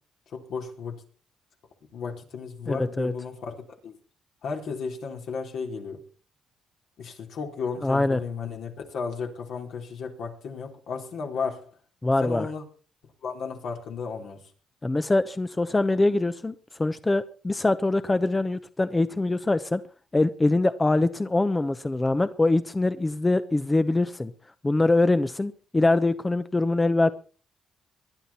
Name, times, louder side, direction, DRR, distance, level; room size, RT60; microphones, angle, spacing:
voice 1, 0.3-1.0 1.9-3.9 4.4-6.0 7.0-11.7 12.2-12.6 13.2-14.5, left 5 dB, 70° left, 2 dB, 4.0 m, -34 dB
voice 2, 2.7-3.1 7.8-8.2 12.0-12.5 14.8-16.5 16.8-19.8 20.1-24.3 24.6-27.1, left 2 dB, 20° left, 11 dB, 0.9 m, -23 dB
21.0 x 11.5 x 4.3 m, 0.39 s
cardioid pair, 90°, 0 cm